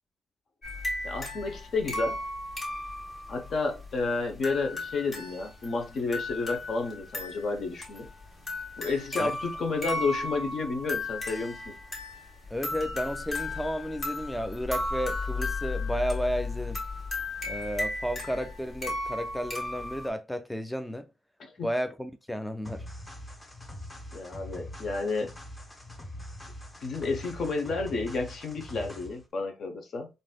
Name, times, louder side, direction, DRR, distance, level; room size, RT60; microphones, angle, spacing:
sound 1, 0.6-20.1, left 2 dB, 35° left, 1.4 m, -35 dB
voice 1, 1.0-2.2 3.3-8.1 8.8-11.7 21.4-21.7 24.1-25.3 26.8-30.1, left 3 dB, 55° left, 0.8 m, -31 dB
voice 2, 12.5-16.8 17.4-21.1 21.6-22.9, equal, 5° left, 0.3 m, -32 dB
sound 2, 22.6-29.3, left 1 dB, 20° left, 0.8 m, -43 dB
3.9 x 2.6 x 2.2 m
cardioid pair, 90°, 0 cm